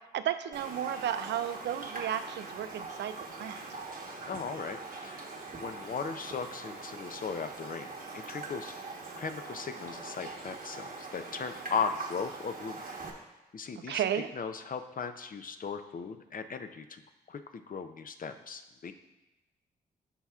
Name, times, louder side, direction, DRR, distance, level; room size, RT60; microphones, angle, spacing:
voice 1, 0.1-3.1 3.4-3.6 13.9-14.3, right 10 dB, 70° right, 11 dB, 0.4 m, -33 dB
Raindrop, 0.5-13.1, right 3 dB, 50° right, 1.2 m, -42 dB
voice 2, 4.2-5.3 5.6-8.7 9.2-12.9 13.5-17.0 17.3-18.9, left 5 dB, 50° left, 8 dB, 0.6 m, -37 dB
12.5 x 4.2 x 2.4 m, 1.0 s
supercardioid pair, 45°, 19 cm